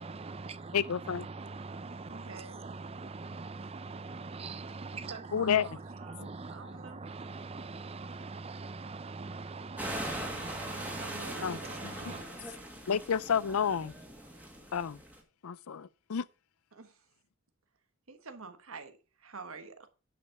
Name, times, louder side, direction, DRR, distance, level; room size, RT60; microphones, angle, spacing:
voice 1, 0.0-12.2, right 3 dB, 25° right, 0.5 m, -43 dB
voice 2, 0.7-1.3 5.3-5.8 11.4-11.9 12.9-13.9 14.7-15.0 15.4-16.2, left 7 dB, 90° left, 0.5 m, -30 dB
voice 3, 2.1-2.8 4.9-7.0 10.9-12.5 16.7-17.0 18.1-19.9, right 4 dB, 75° right, 1.4 m, -48 dB
sound 1, 9.8-15.2, right 1 dB, 10° right, 2.0 m, -41 dB
11.0 x 5.4 x 5.9 m
head